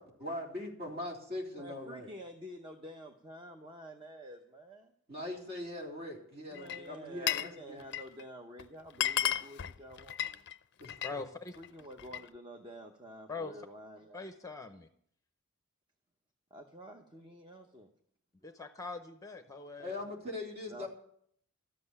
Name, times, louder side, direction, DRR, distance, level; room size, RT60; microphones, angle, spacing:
voice 1, 0.0-2.1 5.1-7.8 10.8-11.2 19.8-20.9, left 1 dB, 45° right, -1 dB, 3.7 m, -41 dB
voice 2, 1.6-4.9 6.5-10.5 11.6-14.3 16.5-17.9 20.7-20.9, equal, 20° right, 4 dB, 0.9 m, -49 dB
Glass, 6.6-7.6 7.8-8.2 8.6-8.7 8.9-11.2 11.5-12.3, left 11 dB, 50° left, 0.5 m, -34 dB
voice 3, 11.0-11.5 13.3-13.7 14.1-14.9 18.4-20.0, left 3 dB, 15° left, 7 dB, 0.7 m, -42 dB
13.5 x 7.8 x 9.8 m, 0.66 s
head